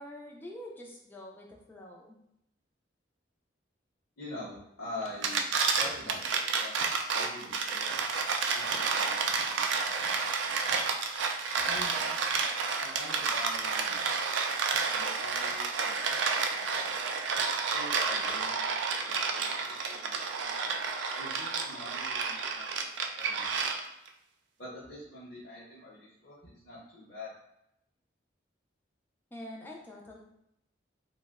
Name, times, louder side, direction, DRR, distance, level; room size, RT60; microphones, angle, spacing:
voice 1, 0.0-2.2 29.3-30.2, left 1 dB, 10° left, -1 dB, 0.3 m, -45 dB
voice 2, 4.2-5.4 5.7-6.7 7.1-7.9 8.5-10.5 11.5-12.2 12.8-14.1 14.9-16.9 17.7-19.5 19.9-20.7 21.2-23.6 24.6-27.3, left 1 dB, 50° left, -9 dB, 0.7 m, -45 dB
sound 1, 5.0-24.1, right 5 dB, 75° right, 0.3 m, -30 dB
2.9 x 2.1 x 3.5 m, 0.80 s
head